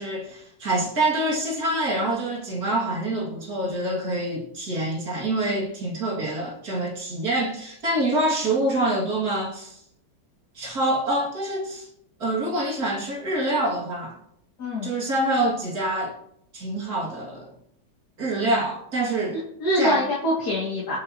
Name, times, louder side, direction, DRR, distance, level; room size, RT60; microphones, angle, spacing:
voice 1, 0.0-9.8 10.5-11.9 12.2-14.2 14.8-16.1 16.5-17.5 18.2-19.4 19.8-20.0, right 1 dB, 45° right, 3.0 m, -26 dB
voice 2, 14.6-14.9 19.3-21.0, left 1 dB, 50° left, 3.0 m, -25 dB
25.0 x 8.4 x 3.0 m
omnidirectional pair, 2.2 m